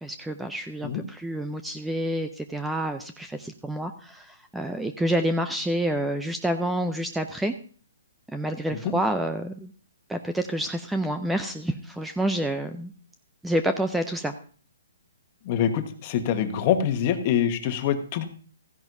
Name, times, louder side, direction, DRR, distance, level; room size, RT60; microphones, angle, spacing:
voice 1, 0.0-7.5 8.3-9.7 10.1-12.9 13.4-14.3, right 1 dB, 5° right, 7 dB, 0.5 m, -28 dB
voice 2, 15.4-18.3, left 9 dB, 35° left, 7 dB, 1.3 m, -25 dB
15.0 x 10.5 x 2.7 m, 0.41 s
hypercardioid pair, 155°, 0 cm